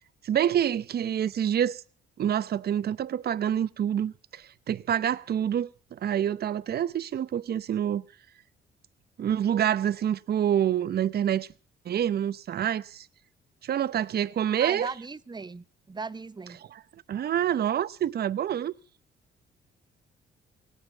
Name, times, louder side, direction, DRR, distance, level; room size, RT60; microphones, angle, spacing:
voice 1, 0.2-1.8 2.2-8.0 9.2-11.5 11.8-13.1 13.6-14.9 16.7-18.7, right 10 dB, 55° right, 0.7 m, -27 dB
voice 2, 14.6-16.6, right 4 dB, 20° right, 0.8 m, -37 dB
18.0 x 9.0 x 8.1 m
cardioid pair, 90°, 20 cm